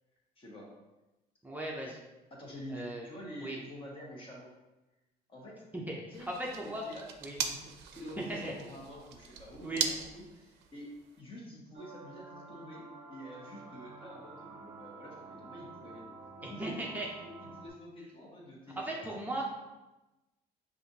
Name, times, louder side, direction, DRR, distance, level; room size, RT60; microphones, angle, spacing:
voice 1, 0.4-0.7 2.3-4.5 5.3-5.6 6.1-16.1 16.4-16.7 17.0-19.4, equal, 30° left, -3 dB, 1.3 m, -48 dB
voice 2, 1.4-2.0 2.7-3.1 3.4-3.6 5.7-6.0 6.3-6.8 7.2-7.4 8.2-8.5 9.6-9.9 16.4-17.1 18.8-19.4, right 1 dB, 10° right, -3 dB, 0.5 m, -37 dB
sound 1, 6.1-11.2, right 7 dB, 90° right, 0.4 m, -40 dB
sound 2, 11.7-17.7, right 4 dB, 45° right, 0.7 m, -50 dB
5.5 x 2.5 x 2.7 m, 1.0 s
cardioid pair, 110°, 17 cm